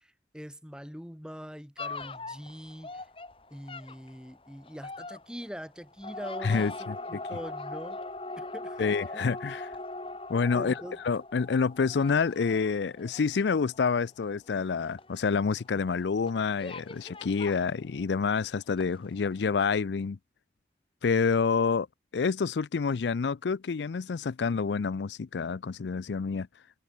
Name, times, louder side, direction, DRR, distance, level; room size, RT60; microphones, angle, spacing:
voice 1, 0.0-3.1 3.5-8.0 8.4-9.2 10.5-11.0, equal, 5° right, 6.2 m, -43 dB
sound 1, 1.8-18.4 18.8-19.3 19.6-19.7, left 2 dB, 30° left, 2.6 m, -41 dB
voice 2, 6.4-6.9 8.8-9.7 10.3-10.7 11.0-20.2 21.0-21.9 22.1-26.5, left 5 dB, 80° left, 0.5 m, -28 dB
head